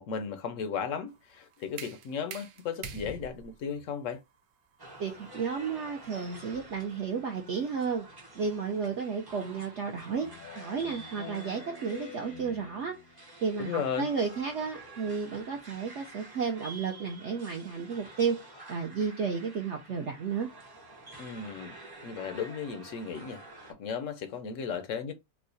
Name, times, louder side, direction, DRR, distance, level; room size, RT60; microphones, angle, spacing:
voice 1, 0.0-4.2 13.6-14.1 21.2-21.7 22.0-25.1, left 7 dB, 70° left, 0.8 m, -35 dB
sound 1, 1.1-6.9, right 6 dB, 90° right, 1.4 m, -47 dB
sound 2, 4.8-23.7, right 2 dB, 30° right, 0.4 m, -49 dB
voice 2, 5.0-8.1 8.3-13.0 13.4-20.5, right 6 dB, 70° right, 0.6 m, -32 dB
Speech synthesizer, 10.2-13.3, left 6 dB, 85° left, 1.5 m, -47 dB
4.6 x 2.1 x 2.5 m
omnidirectional pair, 1.8 m